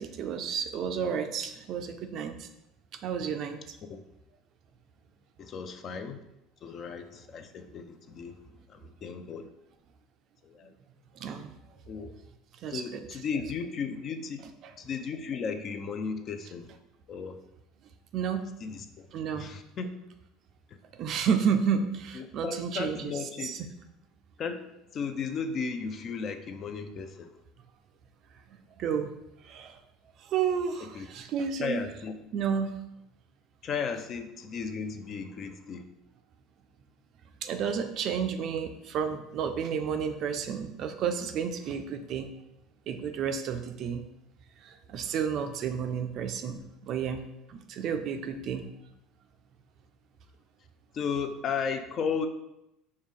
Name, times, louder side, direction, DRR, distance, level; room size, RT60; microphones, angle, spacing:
voice 1, 0.0-2.5 3.0-3.6 11.2-11.6 12.6-12.8 18.1-18.5 19.1-19.5 21.0-23.1 23.4-23.6 28.8-29.1 29.4-29.8 30.2-31.8 32.3-32.8 37.4-42.3 42.9-44.0 44.6-47.2 47.5-48.7, right 7 dB, 55° right, 7 dB, 0.3 m, -31 dB
voice 2, 5.4-6.2 6.6-8.4 8.7-9.5 10.4-10.7 11.9-12.1 12.7-14.5 14.8-16.7 17.1-17.4 18.6-19.1 19.3-19.9 20.7-20.8 22.1-23.5 24.4-24.6 24.9-27.4 30.8-31.1 31.6-32.3 33.6-35.8 50.9-52.3, left 5 dB, 45° left, 8 dB, 0.4 m, -35 dB
4.7 x 2.1 x 3.5 m, 0.86 s
supercardioid pair, 95°, 0 cm